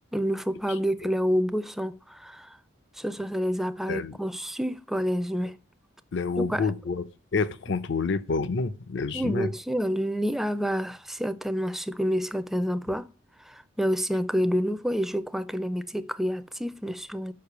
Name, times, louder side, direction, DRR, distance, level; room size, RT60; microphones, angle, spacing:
voice 1, 0.1-2.6 3.0-5.6 6.4-6.7 9.1-13.1 13.5-17.3, equal, ahead, 0.4 m, -28 dB
voice 2, 3.9-4.2 6.1-7.0 7.3-9.5, left 4 dB, 65° left, 0.6 m, -28 dB
6.7 x 5.3 x 6.8 m
head